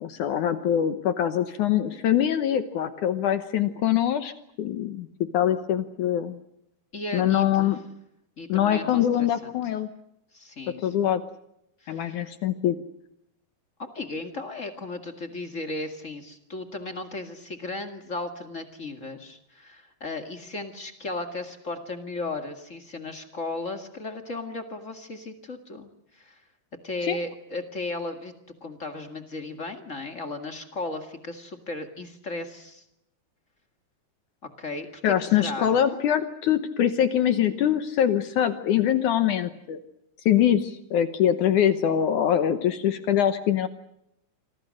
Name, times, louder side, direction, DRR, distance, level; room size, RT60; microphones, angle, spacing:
voice 1, 0.0-4.3 4.6-5.1 5.3-6.4 7.1-7.8 8.5-9.9 10.8-11.2 11.9-12.8 27.1-27.2 35.0-39.8 40.3-43.7, left 10 dB, 70° left, 10 dB, 2.0 m, -23 dB
voice 2, 6.9-7.8 8.4-9.5 10.3-10.9 11.8-12.3 13.8-26.4 26.8-28.3 28.6-32.8 34.6-35.8, left 2 dB, 45° left, 6 dB, 1.0 m, -35 dB
28.0 x 25.0 x 6.5 m, 0.82 s
omnidirectional pair, 4.7 m